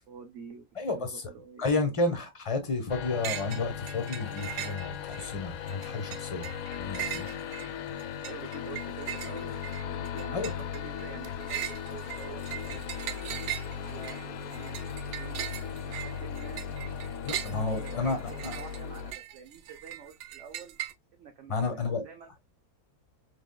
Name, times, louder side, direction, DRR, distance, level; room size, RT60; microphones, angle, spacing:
voice 1, 0.1-1.7 8.2-13.3 13.7-14.8 15.1-15.5 15.8-16.6 17.5-20.8 21.1-22.4, right 7 dB, 60° right, 1.0 m, -48 dB
voice 2, 0.8-1.2 1.6-6.5 6.8-7.3 10.3-10.5 17.2-18.5 21.5-22.1, left 3 dB, 25° left, 0.8 m, -31 dB
sound 1, 2.9-19.1, left 7 dB, 70° left, 0.9 m, -37 dB
sound 2, 3.2-5.3 5.7-20.9, right 12 dB, 90° right, 1.1 m, -40 dB
3.8 x 3.3 x 2.2 m
omnidirectional pair, 1.7 m